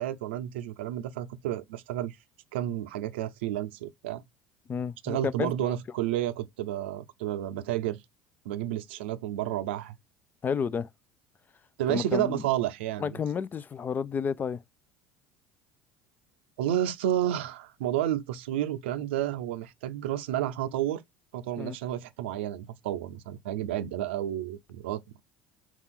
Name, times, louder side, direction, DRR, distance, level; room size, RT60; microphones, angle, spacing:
voice 1, 0.0-2.2 2.5-4.2 5.0-8.0 8.5-10.0 11.8-13.1 16.6-21.0 21.3-25.2, right 12 dB, 75° right, 0.5 m, -31 dB
voice 2, 4.7-5.8 10.4-10.9 11.9-12.4 13.0-14.6 21.6-21.8, left 6 dB, 30° left, 0.4 m, -31 dB
4.1 x 2.3 x 3.6 m
hypercardioid pair, 70°, 6 cm